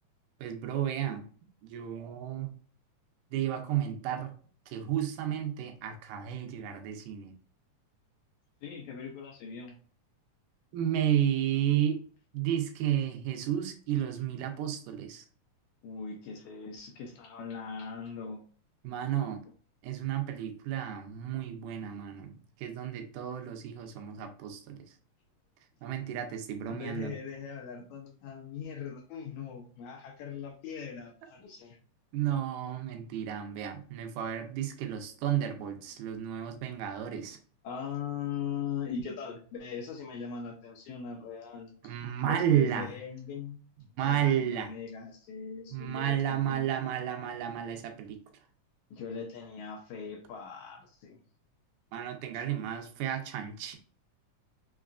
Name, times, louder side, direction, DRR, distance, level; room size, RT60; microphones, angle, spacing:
voice 1, 0.4-1.3 1.6-2.5 3.3-4.3 4.7-7.3 10.7-12.0 12.3-15.2 18.8-19.4 19.8-22.3 22.6-24.8 25.8-27.1 32.1-37.4 41.8-43.0 44.0-44.7 45.7-48.2 51.9-53.8, right 10 dB, 85° right, 2.2 m, -32 dB
voice 2, 8.6-9.8 15.8-18.4 26.7-31.8 37.6-41.7 42.2-43.6 44.0-46.7 48.9-51.2, left 6 dB, 75° left, 1.8 m, -40 dB
5.5 x 2.4 x 2.3 m
omnidirectional pair, 3.7 m